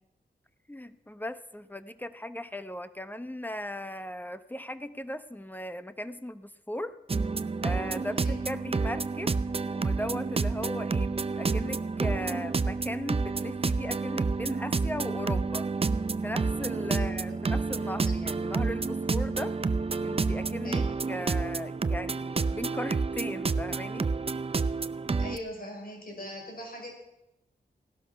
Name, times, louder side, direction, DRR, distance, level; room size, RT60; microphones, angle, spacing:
voice 1, 0.7-7.0 7.6-9.4 9.7-15.7 16.2-19.6 20.0-24.1, left 1 dB, 10° left, 11 dB, 1.0 m, -37 dB
sound 1, 7.1-25.4, right 4 dB, 30° right, 0.6 m, -29 dB
voice 2, 20.6-21.0 25.2-26.9, left 1 dB, 55° left, 1 dB, 5.6 m, -41 dB
16.5 x 12.0 x 5.8 m, 0.89 s
cardioid pair, 60°, 18 cm